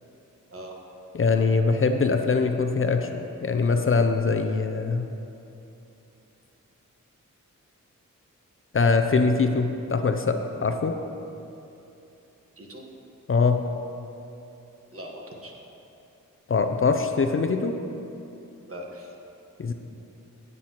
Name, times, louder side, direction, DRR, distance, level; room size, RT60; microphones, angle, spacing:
voice 1, 1.1-5.1 8.7-10.4 10.6-10.9 13.3-13.6 16.5-17.7 19.6-19.7, left 4 dB, 40° left, 6 dB, 0.5 m, -22 dB
voice 2, 14.9-15.7 18.7-19.1, equal, 45° right, 0 dB, 1.3 m, -41 dB
10.5 x 7.5 x 3.0 m, 2.8 s
cardioid pair, 65°, 31 cm